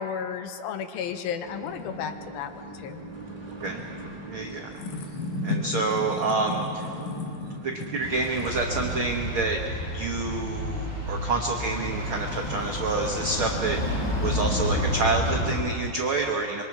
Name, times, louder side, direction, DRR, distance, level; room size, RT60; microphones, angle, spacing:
voice 1, 0.0-2.5 2.8-3.0, left 7 dB, 90° left, 9 dB, 2.7 m, -33 dB
sound 1, 1.0-11.1, left 3 dB, 65° left, 2.8 m, -37 dB
sound 2, 1.4-8.9, right 2 dB, 30° right, 0.8 m, -42 dB
voice 2, 4.3-4.7 5.4-6.9 7.6-9.6 9.9-16.6, right 3 dB, 80° right, 1 dB, 1.1 m, -28 dB
sound 3, 8.0-15.5, equal, 10° left, 6.0 m, -30 dB
25.5 x 23.0 x 4.7 m, 2.5 s
omnidirectional pair, 4.2 m